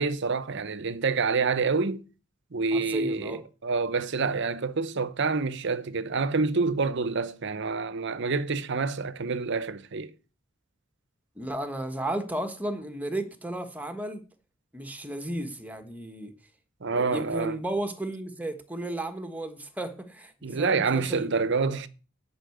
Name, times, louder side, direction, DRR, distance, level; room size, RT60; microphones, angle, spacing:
voice 1, 0.0-2.0 2.5-10.1 16.8-17.6 20.4-21.9, right 4 dB, 55° right, 0.8 m, -27 dB
voice 2, 2.7-3.4 11.4-14.2 14.7-16.3 16.9-21.3 21.6-21.8, right 1 dB, 5° right, 1.3 m, -34 dB
10.5 x 5.7 x 7.8 m
head